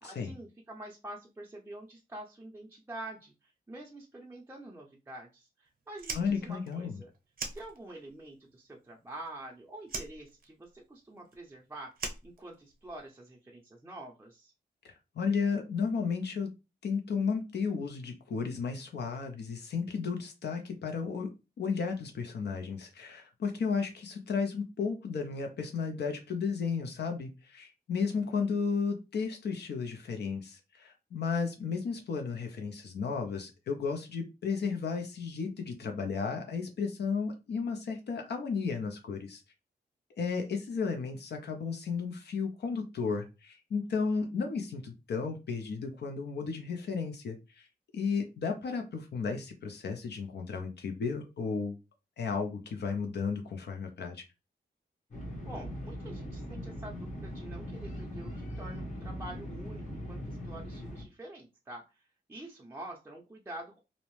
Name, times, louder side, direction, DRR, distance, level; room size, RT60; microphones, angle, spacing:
voice 1, 0.0-7.1 7.5-14.5 28.2-28.4 55.4-63.8, right 1 dB, 15° right, -1 dB, 0.5 m, -47 dB
Fire, 5.9-8.2 8.5-9.5 9.8-13.0, right 4 dB, 55° right, 0.6 m, -41 dB
voice 2, 6.1-7.0 14.8-16.5 16.8-21.3 21.6-39.4 40.1-47.7 47.9-51.8 52.2-54.2, left 5 dB, 70° left, 4 dB, 0.5 m, -33 dB
sound 1, 55.1-61.0, equal, 45° left, 1.0 m, -40 dB
2.6 x 2.0 x 3.0 m, 0.27 s
wide cardioid pair, 95°, 18 cm